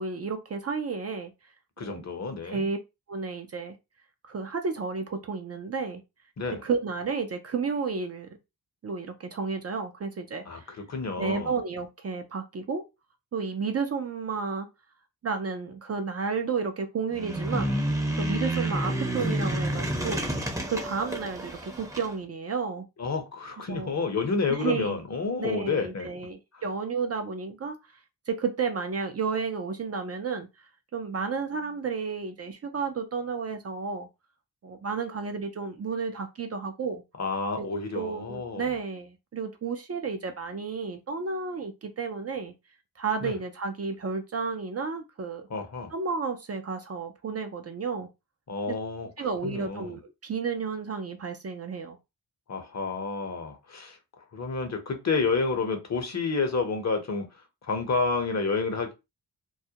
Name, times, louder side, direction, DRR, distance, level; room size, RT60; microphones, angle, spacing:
voice 1, 0.0-1.3 1.8-2.0 2.4-2.8 3.1-3.8 4.2-6.0 6.6-8.3 8.8-10.8 11.2-12.8 13.3-14.7 15.2-17.7 18.2-20.3 20.6-22.9 23.7-23.9 24.5-25.0 25.4-28.0 28.3-34.1 34.6-37.0 37.6-42.5 43.0-45.5 45.9-48.1 49.2-52.0, right 5 dB, 40° right, 0.4 m, -32 dB
voice 2, 1.8-2.7 6.4-6.6 10.5-11.5 23.0-26.1 26.5-26.6 37.2-38.7 43.2-43.3 45.5-45.9 48.5-49.1 49.4-50.0 52.5-54.0 54.3-57.3 57.6-58.9, left 4 dB, 45° left, 0.8 m, -30 dB
sound 1, 17.1-22.1, right 1 dB, 10° right, 0.7 m, -29 dB
2.3 x 2.1 x 2.7 m
cardioid pair, 70°, 40 cm